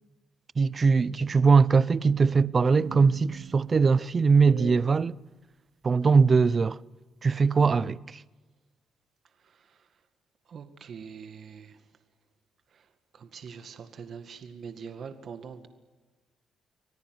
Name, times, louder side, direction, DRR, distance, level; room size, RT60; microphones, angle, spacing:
voice 1, 0.6-5.1 5.8-6.8 7.2-8.2, right 5 dB, 35° right, 0.7 m, -21 dB
sound 1, 2.8-5.0, right 9 dB, 75° right, 1.1 m, -42 dB
voice 2, 9.4-9.9 10.5-11.8 12.7-12.9 13.1-15.7, right 6 dB, 55° right, 2.0 m, -43 dB
25.5 x 18.0 x 9.4 m
cardioid pair, 90°, 0 cm